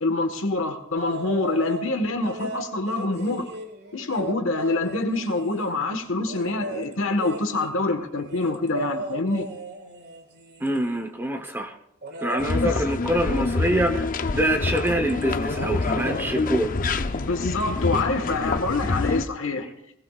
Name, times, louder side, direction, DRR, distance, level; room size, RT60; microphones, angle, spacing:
voice 1, 0.0-3.5 3.9-9.5 12.6-12.8 17.1-19.7, left 2 dB, 70° left, 1.5 m, -26 dB
sound 1, 1.0-1.9 2.2-5.8 6.3-11.1 12.0-12.5 14.3-14.5 14.8-15.2 15.5-16.2 17.6-17.7, right 1 dB, 55° right, 1.9 m, -36 dB
voice 2, 10.6-11.7 12.2-16.7, right 1 dB, 10° right, 0.9 m, -25 dB
sound 2, 12.4-19.3, left 3 dB, 40° left, 0.6 m, -26 dB
19.0 x 19.0 x 2.4 m
head